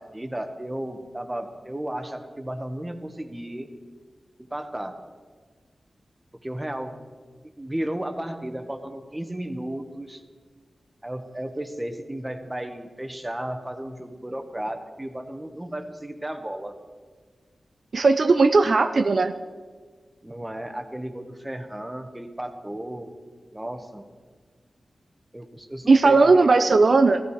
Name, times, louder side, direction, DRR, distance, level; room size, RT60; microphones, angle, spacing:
voice 1, 0.0-3.7 4.4-5.0 6.4-7.0 7.6-10.2 11.0-16.8 20.2-23.1 23.5-24.0 25.3-26.7, right 1 dB, 15° right, 7 dB, 1.5 m, -34 dB
voice 2, 17.9-19.3 25.9-27.2, right 3 dB, 65° right, 7 dB, 0.7 m, -17 dB
15.5 x 15.5 x 5.0 m, 1.5 s
wide cardioid pair, 65°, 0 cm